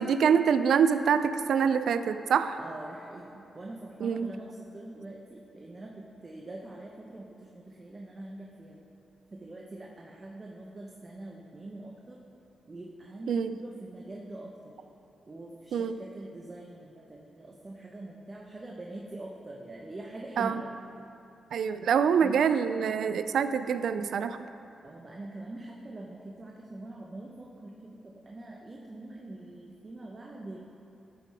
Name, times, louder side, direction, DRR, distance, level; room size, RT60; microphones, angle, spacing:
voice 1, 0.0-2.6 4.0-4.3 13.3-13.5 15.7-16.0 20.4-20.6 21.5-24.4, right 7 dB, 80° right, 11 dB, 0.4 m, -25 dB
voice 2, 2.6-8.8 9.3-12.2 12.7-14.8 15.3-20.7 22.2-22.4 24.8-30.6, right 2 dB, 35° right, -1 dB, 1.0 m, -44 dB
11.5 x 8.5 x 3.5 m, 2.8 s
cardioid pair, 70°, 0 cm